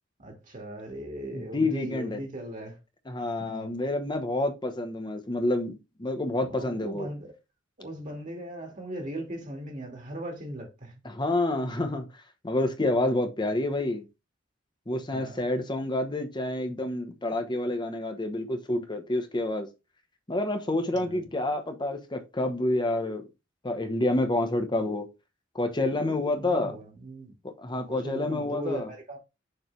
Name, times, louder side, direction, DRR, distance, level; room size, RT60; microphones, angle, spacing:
voice 1, 0.2-2.8 3.4-3.8 6.4-7.3 7.8-10.9 13.0-13.2 15.1-15.5 20.9-21.2 26.3-27.3 27.8-29.2, right 1 dB, 40° right, 1.9 m, -38 dB
voice 2, 1.3-2.2 3.1-7.1 11.0-12.1 12.4-14.0 14.9-19.7 20.3-23.2 23.6-25.1 25.5-26.7 27.4-28.9, left 2 dB, 25° left, 0.9 m, -28 dB
6.7 x 3.3 x 4.4 m
head